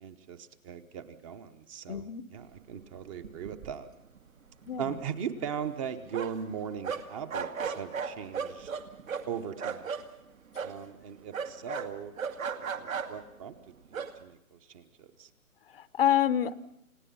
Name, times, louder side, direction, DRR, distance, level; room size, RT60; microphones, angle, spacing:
voice 1, 0.0-2.1 2.3-3.9 4.8-8.7 9.3-9.9 10.6-12.1 12.6-13.5 13.9-15.3, right 8 dB, 25° right, 10 dB, 1.0 m, -39 dB
voice 2, 1.9-2.2 4.6-5.0 15.7-16.6, left 10 dB, 40° left, 14 dB, 0.8 m, -28 dB
sound 1, 2.9-3.0 3.2-3.9 4.2-4.3 4.6-6.5 6.8-10.0 10.5-10.8 11.3-13.3 13.9-14.1, right 6 dB, 65° right, 2.2 m, -36 dB
30.0 x 17.5 x 5.6 m, 0.75 s
figure-of-eight pair, 140°, 43 cm